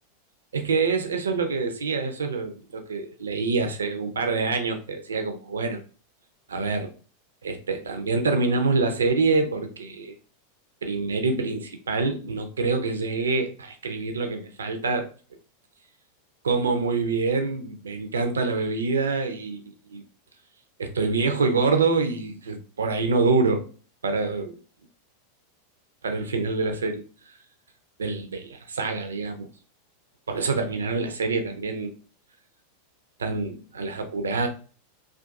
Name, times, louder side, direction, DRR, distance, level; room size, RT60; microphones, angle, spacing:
voice 1, 0.5-5.8 6.5-6.9 7.4-10.1 10.8-15.1 16.4-19.6 19.9-20.0 20.8-23.7 24.0-24.6 26.0-27.4 28.0-29.5 30.3-31.9 33.2-34.5, right 4 dB, 80° right, 0.4 m, -26 dB
2.4 x 2.4 x 2.3 m
hypercardioid pair, 95°, 0 cm